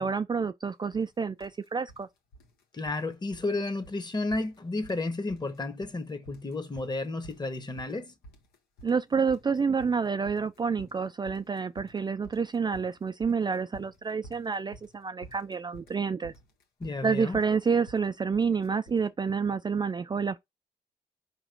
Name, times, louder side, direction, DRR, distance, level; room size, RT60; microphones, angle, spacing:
voice 1, 0.0-2.1 8.8-16.3 17.0-20.4, right 5 dB, 30° right, 0.3 m, -28 dB
sound 1, 0.9-1.1 1.4-2.0 2.3-3.1 3.3-3.6 3.8-4.0 4.3-5.0 5.3-6.0 6.3-19.1, right 1 dB, 85° left, 0.9 m, -51 dB
voice 2, 2.7-8.1 16.8-17.4, left 2 dB, 30° left, 1.0 m, -32 dB
4.8 x 2.9 x 3.7 m
supercardioid pair, 50°, 15 cm